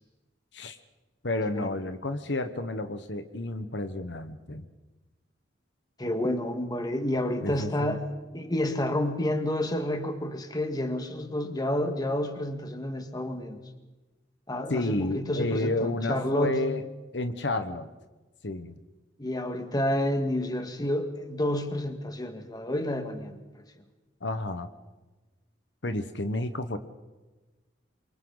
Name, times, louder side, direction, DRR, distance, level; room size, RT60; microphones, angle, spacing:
voice 1, 1.2-4.7 7.4-7.9 14.7-16.8 17.1-17.9 18.4-18.8 24.2-24.7 25.8-26.8, left 2 dB, 75° left, 9 dB, 1.3 m, -31 dB
voice 2, 6.0-8.1 8.3-13.6 14.5-16.6 19.2-23.6, left 1 dB, 20° left, 6 dB, 1.8 m, -30 dB
28.0 x 24.0 x 4.0 m, 1.2 s
head